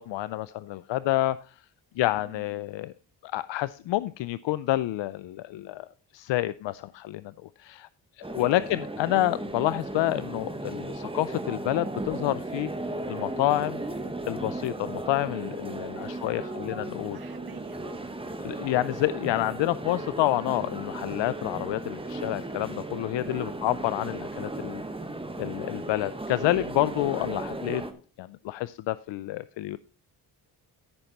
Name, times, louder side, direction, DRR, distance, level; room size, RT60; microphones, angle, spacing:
voice 1, 0.1-1.5 2.0-2.9 3.2-5.9 6.1-7.9 8.2-12.7 13.1-13.8 14.3-17.2 18.4-24.8 25.4-27.8 28.2-29.8, left 15 dB, 80° left, 17 dB, 0.5 m, -28 dB
voice 2, 2.0-2.4 8.4-8.6 15.9-16.7 17.0-18.1 18.5-18.7 23.3-23.6 27.1-27.3, right 7 dB, 55° right, 11 dB, 1.4 m, -49 dB
sound 1, 8.2-27.9, right 2 dB, 15° right, 1.3 m, -36 dB
14.0 x 5.8 x 4.1 m, 0.37 s
cardioid pair, 85°, 43 cm